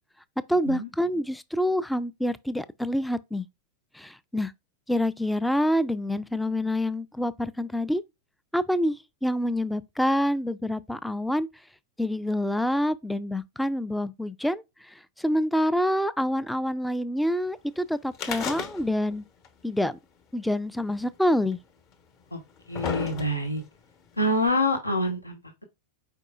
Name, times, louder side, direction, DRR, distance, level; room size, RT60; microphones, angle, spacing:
voice 1, 0.5-3.5 3.9-4.5 4.9-8.0 8.5-9.0 9.2-11.5 12.0-19.2 19.6-20.0 20.3-21.6, left 1 dB, 5° left, 0.3 m, -27 dB
sound 1, 18.1-19.2 19.4-19.5 20.5-20.6 21.5-21.6 22.3-23.6 24.5-24.6, left 7 dB, 40° left, 0.9 m, -33 dB
voice 2, 22.7-23.6 24.2-25.6, left 1 dB, 85° left, 0.9 m, -26 dB
4.7 x 4.5 x 2.3 m
figure-of-eight pair, 90°, 0 cm